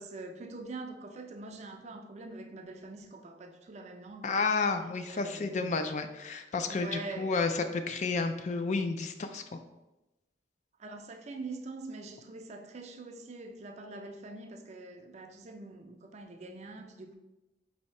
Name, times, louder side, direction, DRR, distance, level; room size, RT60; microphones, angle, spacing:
voice 1, 0.0-4.4 5.1-5.8 6.6-7.4 10.8-17.1, right 2 dB, 40° right, 0.4 m, -44 dB
voice 2, 4.2-9.6, left 4 dB, 40° left, 0.3 m, -31 dB
4.1 x 2.7 x 4.3 m
head